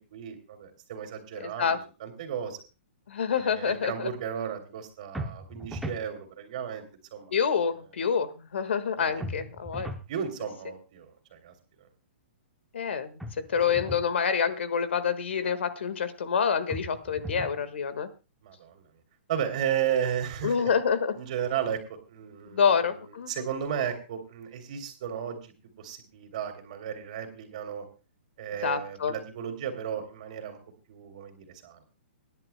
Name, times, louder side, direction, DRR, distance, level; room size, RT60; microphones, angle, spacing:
voice 1, 0.1-1.7 2.0-2.6 3.4-6.8 7.1-7.3 9.0-9.2 10.1-11.5 11.8-11.9 18.4-18.8 19.3-20.7 21.1-25.5 25.8-27.9 28.4-30.6 30.9-31.8, right 8 dB, 35° right, 6 dB, 2.9 m, -34 dB
voice 2, 3.1-4.1 7.3-9.9 12.7-13.2 13.5-18.1 20.4-21.1 22.5-23.3 28.6-29.1, left 6 dB, 70° left, 12 dB, 1.6 m, -27 dB
sound 1, 5.1-6.1 9.2-10.1 13.2-14.1 16.7-17.6, right 1 dB, ahead, 0.7 m, -37 dB
25.0 x 11.0 x 2.2 m, 0.31 s
hypercardioid pair, 180°, 7 cm